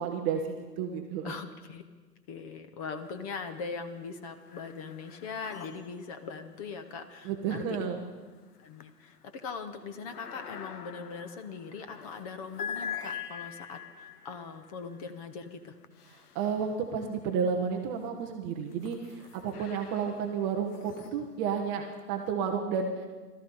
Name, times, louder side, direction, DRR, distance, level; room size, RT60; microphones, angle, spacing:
voice 1, 0.0-1.3 7.2-8.0 16.3-23.1, right 6 dB, 15° right, 3 dB, 0.6 m, -31 dB
voice 2, 1.2-1.8 2.3-7.8 8.6-15.7, left 5 dB, 25° left, 8 dB, 0.7 m, -41 dB
sound 1, 3.0-3.7 4.0-17.2 17.8-22.3, left 7 dB, 70° left, 1.1 m, -45 dB
18.5 x 13.0 x 5.4 m, 1.4 s
hypercardioid pair, 130°, 48 cm